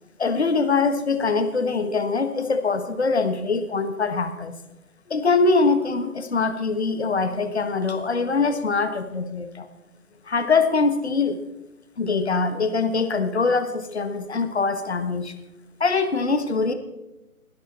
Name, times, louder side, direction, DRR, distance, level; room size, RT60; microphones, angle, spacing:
voice 1, 0.2-4.5 5.1-9.7 10.3-11.4 12.0-15.3 15.8-16.7, left 4 dB, 50° left, 9 dB, 1.3 m, -23 dB
21.0 x 10.5 x 4.2 m, 0.98 s
figure-of-eight pair, 160°, 43 cm